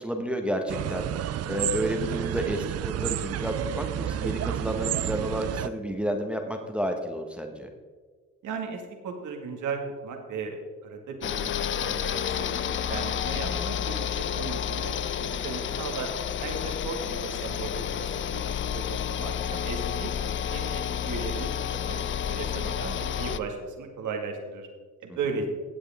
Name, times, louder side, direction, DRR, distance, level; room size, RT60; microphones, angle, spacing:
voice 1, 0.0-7.7 13.5-13.8, equal, 5° right, 3 dB, 1.4 m, -31 dB
sound 1, 0.7-5.7, right 11 dB, 55° right, 0.5 m, -31 dB
voice 2, 8.4-14.1 14.3-16.1 16.4-18.8 19.1-21.5 21.9-24.7 25.0-25.5, right 4 dB, 75° right, 3 dB, 2.1 m, -36 dB
sound 2, 11.2-23.4, left 9 dB, 40° left, 0.5 m, -30 dB
17.0 x 8.0 x 3.6 m, 1.5 s
cardioid pair, 90°, 30 cm